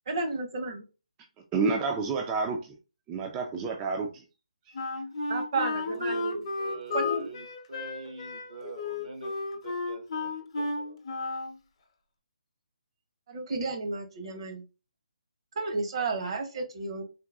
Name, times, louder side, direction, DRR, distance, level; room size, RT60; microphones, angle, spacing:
voice 1, 0.1-0.8 5.3-6.4 6.9-7.3 13.3-14.6 15.5-17.0, right 3 dB, 45° right, 0.9 m, -32 dB
voice 2, 1.5-2.8 3.1-4.2, right 4 dB, 15° right, 0.3 m, -29 dB
Wind instrument woodwind instrument, 4.7-11.6, left 3 dB, 40° left, 0.7 m, -33 dB
voice 3, 5.9-9.3 9.6-11.2, right 4 dB, 70° right, 1.2 m, -45 dB
3.7 x 2.2 x 2.3 m
figure-of-eight pair, 150°, 4 cm